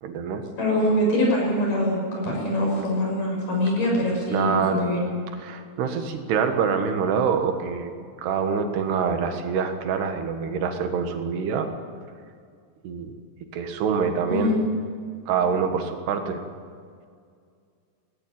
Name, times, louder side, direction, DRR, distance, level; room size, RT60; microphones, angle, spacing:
voice 1, 0.0-0.4 4.3-4.9 5.4-7.9 8.2-11.7 12.8-13.1 13.5-14.6 15.3-16.4, right 6 dB, 85° right, 6 dB, 3.6 m, -25 dB
voice 2, 0.6-5.0 14.3-14.6, left 1 dB, 55° left, -1 dB, 8.0 m, -23 dB
18.0 x 18.0 x 9.2 m, 2.2 s
omnidirectional pair, 4.6 m